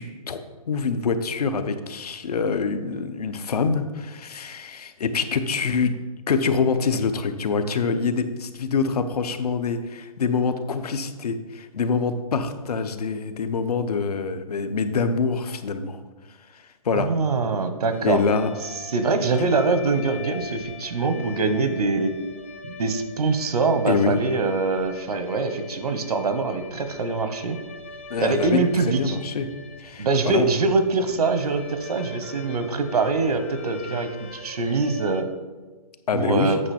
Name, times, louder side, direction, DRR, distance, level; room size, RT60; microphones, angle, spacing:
voice 1, 0.0-5.9 6.3-16.0 16.5-17.1 18.0-18.5 23.9-24.2 28.1-29.5 29.8-30.5 36.1-36.6, left 5 dB, 80° left, 9 dB, 0.8 m, -25 dB
voice 2, 16.9-18.2 18.9-22.1 22.6-27.6 28.2-29.2 30.0-35.3 36.1-36.6, right 3 dB, 80° right, 9 dB, 1.1 m, -24 dB
sound 1, 17.9-35.2, left 5 dB, 20° left, 0.3 m, -42 dB
8.7 x 5.5 x 4.3 m, 1.3 s
hypercardioid pair, 175°, 19 cm